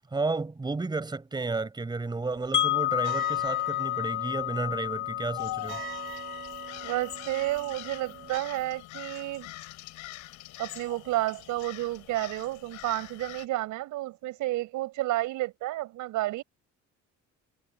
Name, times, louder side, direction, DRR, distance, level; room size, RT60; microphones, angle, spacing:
voice 1, 0.1-5.8, right 3 dB, 15° right, 6.0 m, -32 dB
sound 1, 2.3-8.4, right 10 dB, 45° right, 4.3 m, -44 dB
Wind chime, 2.5-8.5, left 15 dB, 40° left, 1.3 m, -31 dB
sound 2, 5.4-13.5, left 16 dB, 85° left, 5.4 m, -43 dB
voice 2, 6.8-9.5 10.6-16.4, right 16 dB, 85° right, 5.7 m, -31 dB
cardioid pair, 155°, 29 cm